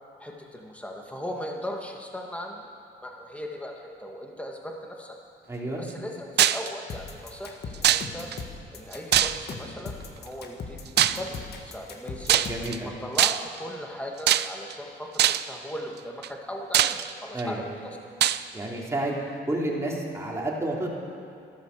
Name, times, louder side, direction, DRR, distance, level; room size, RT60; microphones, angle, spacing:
voice 1, 0.2-2.7 3.0-5.2 5.8-8.3 8.7-12.4 12.8-18.0, equal, 5° left, 1 dB, 2.0 m, -38 dB
voice 2, 5.5-5.8 12.5-12.9 17.3-17.6 18.5-19.2 19.5-20.9, right 1 dB, 15° right, -3 dB, 3.0 m, -30 dB
sound 1, 6.4-6.7 7.8-8.4 9.1-9.7 11.0-11.3 12.3-12.8 13.2-13.6 14.3-14.7 15.2-15.5 16.2-16.3 16.7-17.4 18.2-18.4, right 11 dB, 60° right, 0.4 m, -22 dB
sound 2, 6.9-12.8, left 5 dB, 55° left, 1.6 m, -38 dB
12.5 x 12.0 x 6.8 m, 2.6 s
cardioid pair, 90°, 20 cm